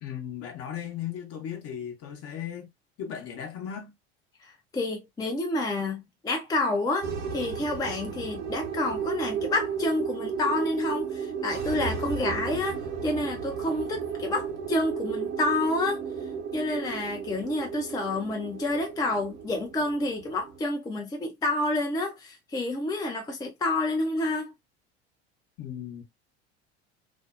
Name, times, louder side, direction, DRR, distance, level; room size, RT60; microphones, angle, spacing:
voice 1, 0.0-2.7 3.0-3.9 25.6-26.0, left 9 dB, 45° left, 0.9 m, -36 dB
voice 2, 4.4-16.0 16.5-24.5, left 2 dB, 10° left, 0.5 m, -29 dB
sound 1, 7.0-20.6, right 6 dB, 65° right, 1.0 m, -34 dB
2.6 x 2.0 x 2.3 m
hypercardioid pair, 75°, 33 cm